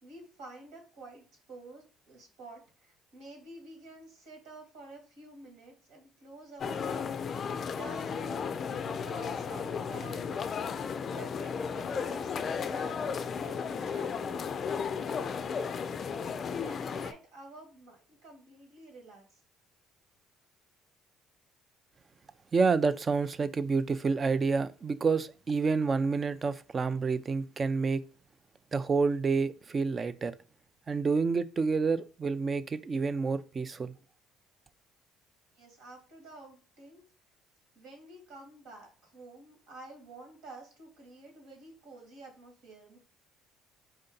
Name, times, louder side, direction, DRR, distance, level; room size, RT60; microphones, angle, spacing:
voice 1, 0.0-13.0 13.3-15.5 16.6-19.4 35.5-37.0 37.7-43.0, right 2 dB, 80° right, 1.8 m, -50 dB
sound 1, 6.6-17.1, left 6 dB, 50° left, 0.3 m, -34 dB
voice 2, 22.5-28.0 28.7-30.3 30.9-33.9, right 4 dB, 35° right, 0.4 m, -28 dB
4.4 x 2.7 x 3.8 m
supercardioid pair, 85°, 0 cm